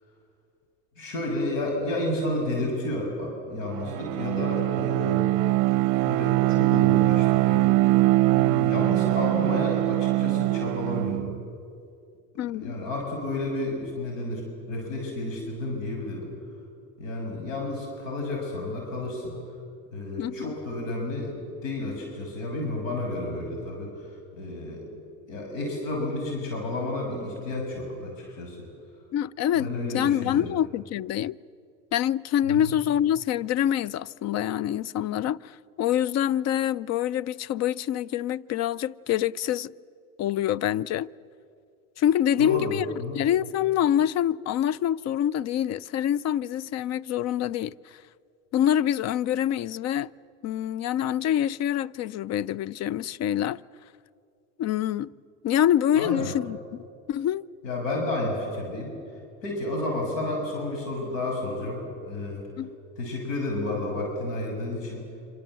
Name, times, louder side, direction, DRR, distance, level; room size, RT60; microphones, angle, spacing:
voice 1, 1.0-5.3 6.1-7.7 8.3-11.4 12.5-14.4 14.7-16.3 17.0-19.3 19.9-24.8 25.3-28.6 29.5-30.5 32.5-32.7 42.4-43.2 55.9-56.3 57.6-58.9 59.4-62.4 63.0-65.0, left 2 dB, 80° left, 6.9 m, -31 dB
Bowed string instrument, 3.6-11.4, right 19 dB, 60° right, 0.6 m, -22 dB
voice 2, 12.4-12.7 20.2-20.5 29.1-29.7 29.9-31.4 31.9-39.7 40.2-41.1 42.0-42.8 43.1-47.7 48.5-50.1 50.4-53.6 54.6-55.1 55.4-56.8 57.1-57.4 62.6-62.8, left 11 dB, 45° left, 0.6 m, -26 dB
27.0 x 26.0 x 7.7 m
hypercardioid pair, 90°, 38 cm